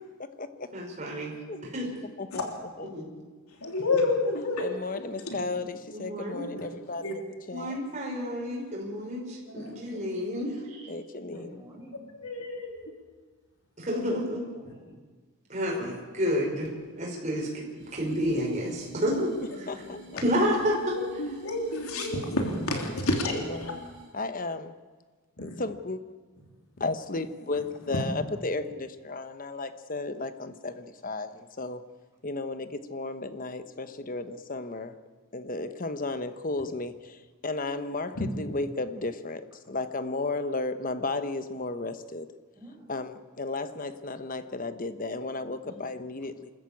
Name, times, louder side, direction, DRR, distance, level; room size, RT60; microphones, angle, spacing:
voice 1, 0.0-0.7 1.5-1.6 2.2-2.5 2.8-2.9 4.6-7.8 9.6-10.1 10.9-11.6 19.7-20.2 22.7-23.8 24.1-24.7 25.4-26.0 26.8-31.8 32.2-35.0 35.3-42.3 42.9-46.5, left 3 dB, 40° left, 10 dB, 1.0 m, -34 dB
voice 2, 0.7-1.3 1.6-2.0 2.9-3.0 5.9-6.5 7.5-10.9 13.8-14.5 15.5-17.7 17.9-19.3 20.2-21.0, equal, 30° right, -2 dB, 5.4 m, -30 dB
voice 3, 3.6-4.6 7.0-7.1 9.5-9.7 12.2-12.9 21.2-23.3 23.6-23.7 25.4-25.6 38.2-38.3, left 2 dB, 80° left, 2 dB, 3.3 m, -29 dB
voice 4, 11.2-12.1 14.0-15.0 19.5-20.1 42.6-42.9 45.6-45.7, equal, 15° right, -2 dB, 6.2 m, -50 dB
sound 1, 17.8-24.3, left 1 dB, 55° right, 5.7 m, -50 dB
26.0 x 14.0 x 8.6 m, 1.4 s
head